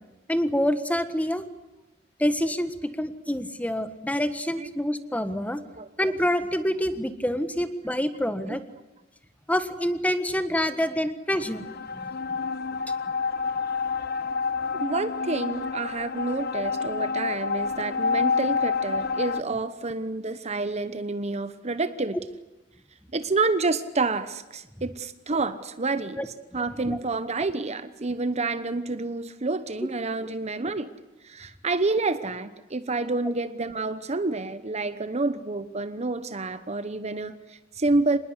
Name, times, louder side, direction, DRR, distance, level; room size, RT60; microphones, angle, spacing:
voice 1, 0.3-1.4 2.2-2.7 3.0-5.6 6.0-8.6 9.5-11.6 11.9-12.1 16.3-16.4 19.5-19.6 26.2-26.3 26.7-27.0 30.3-30.4 33.2-33.3, equal, 5° left, 10 dB, 1.5 m, -27 dB
sound 1, 11.3-19.4, left 5 dB, 55° left, 0.8 m, -28 dB
voice 2, 14.7-22.2 23.1-30.9 31.2-38.2, right 3 dB, 35° right, 12 dB, 1.0 m, -28 dB
26.0 x 20.0 x 8.2 m, 1.0 s
head